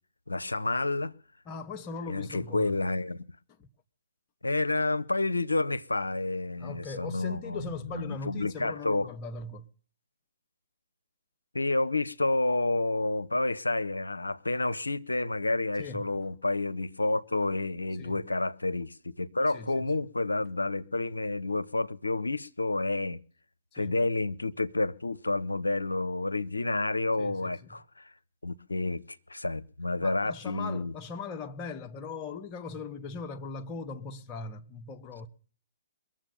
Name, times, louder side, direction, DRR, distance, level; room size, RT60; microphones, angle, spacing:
voice 1, 0.3-1.1 2.1-3.2 4.4-9.1 11.5-23.2 23.7-28.1 28.4-30.9, left 2 dB, 85° left, 0.6 m, -30 dB
voice 2, 1.4-2.8 3.6-3.7 6.6-9.7 15.8-16.0 18.0-18.2 19.5-19.9 23.7-24.0 27.2-27.8 30.0-35.3, left 4 dB, 30° left, 1.0 m, -40 dB
22.0 x 7.4 x 6.9 m
figure-of-eight pair, 125°, 0 cm